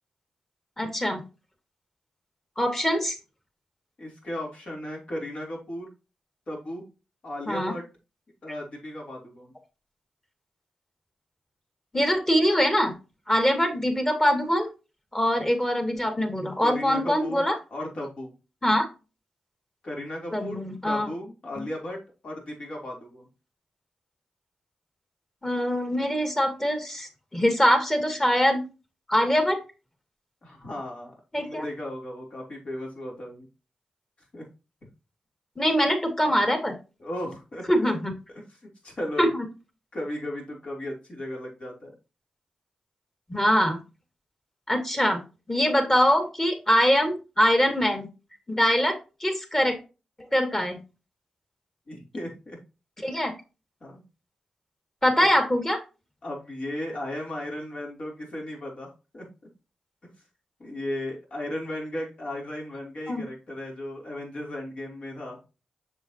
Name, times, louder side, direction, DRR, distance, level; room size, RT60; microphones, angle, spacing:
voice 1, 0.8-1.2 2.6-3.2 7.5-7.7 11.9-12.9 13.3-14.7 15.1-17.5 18.6-18.9 20.3-21.1 21.6-21.7 25.4-28.7 29.1-29.6 31.3-31.6 35.6-36.8 37.7-38.1 39.2-39.4 43.3-43.8 44.7-45.2 45.5-48.1 48.5-49.8 50.3-50.8 53.0-53.3 55.0-55.8 63.1-63.2, equal, 20° left, 5 dB, 2.3 m, -23 dB
voice 2, 4.0-5.9 6.5-6.8 7.2-7.8 8.4-9.5 16.6-17.5 17.7-18.3 19.8-23.3 30.4-31.1 31.4-33.5 34.3-34.5 37.0-37.9 38.5-38.6 38.8-39.5 39.9-41.9 51.9-52.6 53.8-54.0 55.1-55.3 56.2-59.2 60.6-65.4, left 1 dB, 55° left, -1 dB, 3.5 m, -35 dB
6.9 x 6.5 x 2.9 m, 0.30 s
cardioid pair, 50°, 2 cm